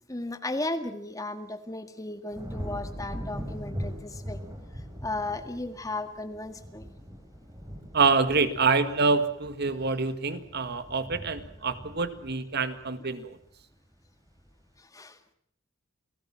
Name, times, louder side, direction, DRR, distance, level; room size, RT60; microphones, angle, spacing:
voice 1, 0.1-4.4 4.7-6.9 14.8-15.2, left 2 dB, 15° left, 8 dB, 1.8 m, -35 dB
sound 1, 2.3-13.6 14.0-14.5, equal, 15° right, 4.2 m, -41 dB
voice 2, 7.9-13.4, right 4 dB, 55° right, 11 dB, 1.9 m, -26 dB
29.5 x 18.5 x 7.5 m, 0.66 s
head